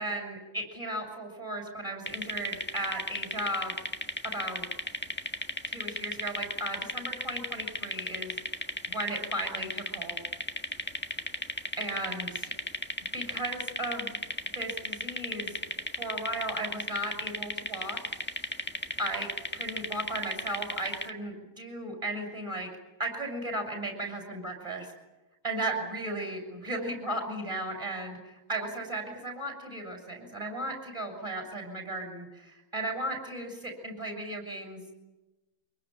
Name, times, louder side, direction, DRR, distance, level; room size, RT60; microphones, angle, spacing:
voice 1, 0.0-3.7 4.2-4.7 5.7-8.4 8.9-10.2 11.8-12.5 13.1-14.2 14.5-15.6 16.0-18.0 19.0-22.7 23.0-24.9 25.4-34.9, right 1 dB, 15° right, 5 dB, 6.5 m, -35 dB
sound 1, 2.1-21.1, left 1 dB, 5° left, 1.2 m, -35 dB
25.0 x 23.0 x 9.0 m, 1.0 s
omnidirectional pair, 2.1 m